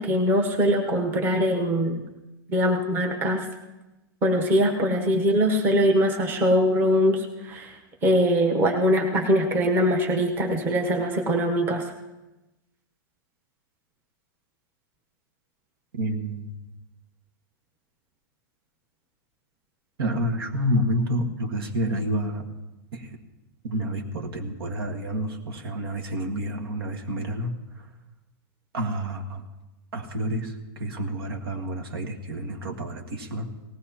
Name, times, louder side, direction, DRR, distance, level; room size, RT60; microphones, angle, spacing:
voice 1, 0.0-2.0 2.5-3.4 4.2-7.7 8.0-11.8, equal, 15° right, 3 dB, 1.0 m, -22 dB
voice 2, 15.9-16.6 20.0-22.5 22.9-23.2 23.6-27.9 28.7-29.4 29.9-33.5, equal, 85° right, 4 dB, 1.8 m, -29 dB
19.0 x 16.0 x 2.9 m, 1.0 s
supercardioid pair, 175°, 12 cm